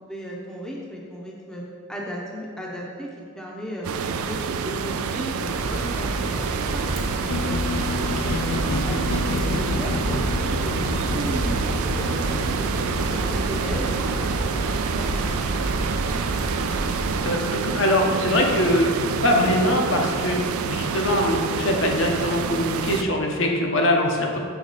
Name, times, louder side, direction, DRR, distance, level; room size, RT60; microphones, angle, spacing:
voice 1, 0.1-3.1 3.4-3.9 4.3-6.9 7.2-12.8 13.1-15.8, equal, 5° left, -3 dB, 0.6 m, -35 dB
sound 1, 3.8-23.0, right 6 dB, 80° right, 0.3 m, -27 dB
sound 2, 5.4-17.2, right 1 dB, 35° right, 0.9 m, -30 dB
sound 3, 7.3-17.4, left 4 dB, 90° left, 0.4 m, -32 dB
voice 2, 17.2-20.4 20.6-24.4, left 1 dB, 60° left, 1 dB, 0.7 m, -22 dB
6.1 x 4.8 x 4.0 m, 2.1 s
head